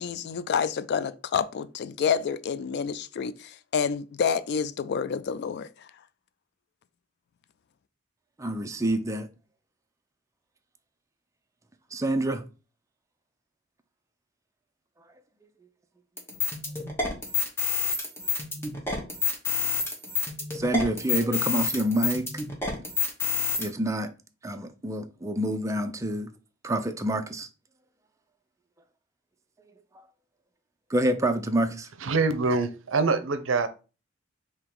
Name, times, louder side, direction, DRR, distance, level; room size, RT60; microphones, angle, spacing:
voice 1, 0.0-5.9, left 6 dB, 55° left, 0.3 m, -28 dB
voice 2, 8.4-9.3 11.9-12.5 20.5-22.3 23.6-24.1 24.4-26.3 26.6-27.5 29.9-30.0 30.9-31.9, right 1 dB, 15° right, 0.5 m, -27 dB
sound 1, 16.2-23.7, left 5 dB, 15° left, 1.1 m, -28 dB
voice 3, 32.0-33.7, right 4 dB, 75° right, 0.6 m, -24 dB
3.7 x 2.9 x 4.5 m
head